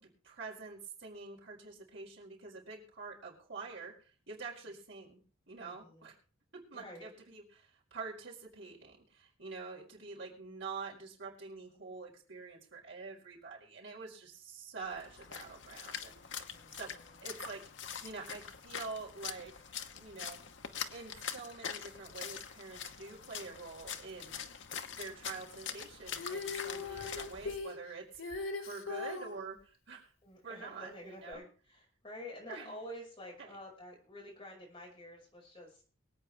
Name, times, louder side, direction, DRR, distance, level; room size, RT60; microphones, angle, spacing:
voice 1, 0.0-5.2 5.5-6.2 6.5-16.2 16.7-16.9 17.2-17.6 18.0-19.5 19.9-20.4 20.9-24.4 24.9-30.1 30.4-31.4 32.5-32.8 33.4-33.6, right 4 dB, 65° right, -3 dB, 4.7 m, -46 dB
voice 2, 5.6-6.0 6.7-7.1 16.5-17.2 30.2-35.8, left 1 dB, 25° left, -3 dB, 5.8 m, -49 dB
Splash splatter, 14.8-27.6, left 7 dB, 65° left, 1.0 m, -44 dB
Female singing, 26.1-29.4 31.3-31.4, left 4 dB, 80° left, 2.0 m, -40 dB
23.5 x 8.7 x 3.4 m, 0.39 s
head